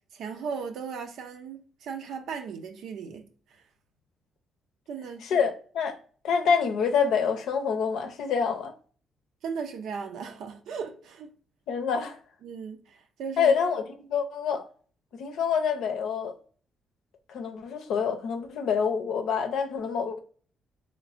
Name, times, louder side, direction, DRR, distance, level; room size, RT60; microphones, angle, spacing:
voice 1, 0.1-3.6 4.9-5.2 9.4-11.3 12.4-13.6, right 6 dB, 75° right, 0.6 m, -37 dB
voice 2, 5.2-6.0 6.2-8.7 11.7-12.2 13.4-13.8 14.1-14.7 15.2-16.3 17.3-20.2, left 6 dB, 80° left, 0.6 m, -26 dB
3.2 x 3.1 x 2.5 m
cardioid pair, 90°, 0 cm